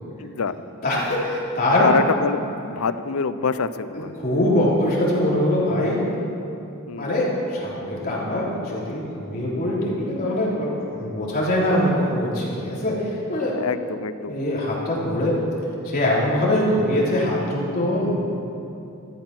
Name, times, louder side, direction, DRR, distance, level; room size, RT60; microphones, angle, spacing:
voice 1, 0.2-0.5 1.8-4.2 6.9-7.2 13.5-14.4, left 4 dB, 80° left, 13 dB, 0.6 m, -25 dB
voice 2, 0.8-1.8 4.2-6.0 6.9-13.6 14.2-15.3 15.8-18.1, left 1 dB, 45° left, -5 dB, 3.5 m, -23 dB
13.0 x 12.5 x 6.0 m, 2.8 s
head